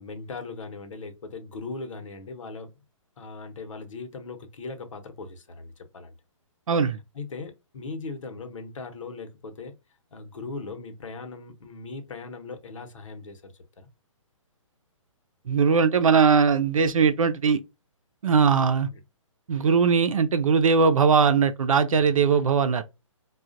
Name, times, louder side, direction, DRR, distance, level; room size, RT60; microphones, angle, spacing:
voice 1, 0.0-2.8 3.2-6.1 7.1-9.7 10.1-13.9, left 3 dB, 65° left, 1.0 m, -39 dB
voice 2, 6.7-7.0 15.5-17.6 18.2-18.9 19.5-22.8, right 5 dB, 75° right, 0.7 m, -20 dB
4.7 x 2.4 x 2.5 m
hypercardioid pair, 150°, 17 cm